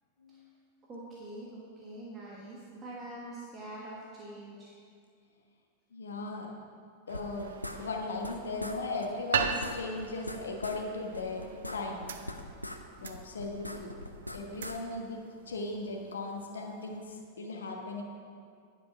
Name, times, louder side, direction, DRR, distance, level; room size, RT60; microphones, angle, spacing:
voice 1, 0.2-0.5 5.9-6.5 7.1-11.4 11.7-12.1 13.0-13.9 14.3-18.0, left 3 dB, 70° left, 1 dB, 1.2 m, -37 dB
voice 2, 0.9-4.7, right 1 dB, 25° right, -5 dB, 1.4 m, -44 dB
sound 1, 7.1-8.3 8.6-8.8 9.0-9.1 9.4-10.8 11.1-12.8 13.0-14.8, left 1 dB, 85° left, 0.5 m, -41 dB
sound 2, 7.1-17.2, right 6 dB, 65° right, 0.5 m, -40 dB
10.5 x 5.3 x 5.7 m, 2.2 s
figure-of-eight pair, 90°, 0 cm